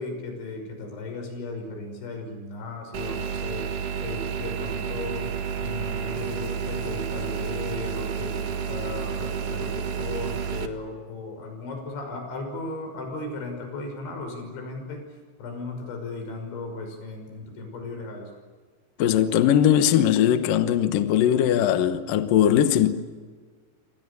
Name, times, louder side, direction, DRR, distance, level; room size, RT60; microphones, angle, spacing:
voice 1, 0.0-3.7 4.0-15.0 15.4-18.3, left 3 dB, 85° left, 8.2 m, -36 dB
sound 1, 2.9-10.7, right 7 dB, 60° right, 1.6 m, -30 dB
voice 2, 19.0-23.0, left 10 dB, 65° left, 2.3 m, -20 dB
28.0 x 26.5 x 7.1 m
omnidirectional pair, 5.2 m